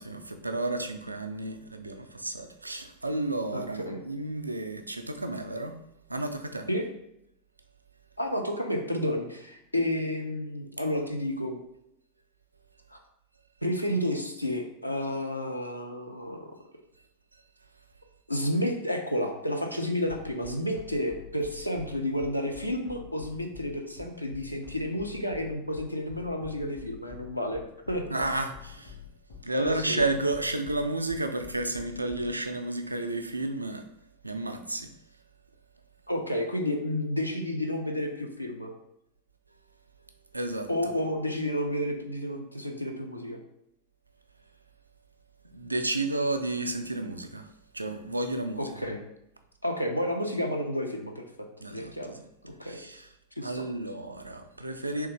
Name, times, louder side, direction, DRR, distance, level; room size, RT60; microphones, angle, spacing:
voice 1, 0.0-5.8 6.1-6.7 28.1-29.0 29.4-33.8 34.2-34.9 40.3-40.9 45.5-47.5 47.7-48.8 51.6-52.2 52.6-53.1 53.4-55.1, right 2 dB, 85° right, 7 dB, 0.3 m, -32 dB
voice 2, 3.5-4.0 6.7-6.9 8.2-11.6 12.9-13.0 13.6-16.5 18.3-27.6 27.9-28.0 29.6-30.0 36.1-38.7 40.7-43.4 48.6-49.0 49.6-52.1 52.4-52.8 53.4-53.6, left 1 dB, 90° left, 3 dB, 0.5 m, -31 dB
sound 1, 20.1-32.3, left 8 dB, 70° left, 1.2 m, -46 dB
3.4 x 3.1 x 3.2 m, 0.80 s
figure-of-eight pair, 90°, 0 cm